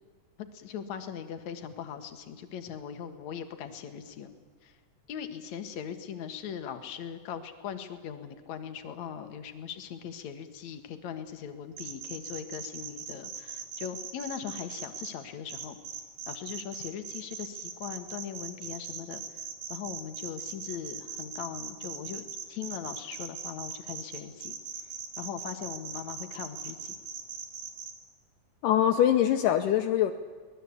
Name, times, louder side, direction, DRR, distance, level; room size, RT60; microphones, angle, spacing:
voice 1, 0.5-4.4 4.6-4.7 5.1-15.8 16.3-19.2 19.7-24.5 25.2-27.0, left 8 dB, 60° left, 8 dB, 2.7 m, -40 dB
sound 1, 11.8-15.1 15.5-27.9, right 7 dB, 75° right, 3.8 m, -40 dB
voice 2, 28.6-30.1, left 11 dB, 75° left, 7 dB, 2.4 m, -23 dB
24.5 x 19.5 x 8.5 m, 1.5 s
omnidirectional pair, 3.9 m